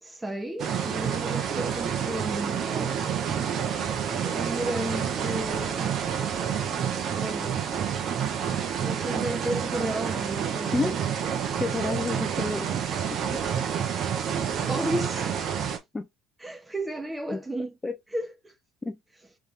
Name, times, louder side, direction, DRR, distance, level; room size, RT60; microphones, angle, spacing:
voice 1, 0.0-3.0 4.2-5.9 7.2-7.5 8.8-11.0 14.7-15.5 16.4-17.8 18.1-18.5, right 1 dB, 10° right, 1.4 m, -33 dB
sound 1, 0.6-15.8, right 8 dB, 50° right, 1.2 m, -29 dB
voice 2, 11.6-12.8 13.1-13.2 15.9-16.1 17.3-17.4 17.8-17.9 18.8-19.0, left 3 dB, 20° left, 0.7 m, -29 dB
3.6 x 3.6 x 3.5 m
hypercardioid pair, 65°, 0 cm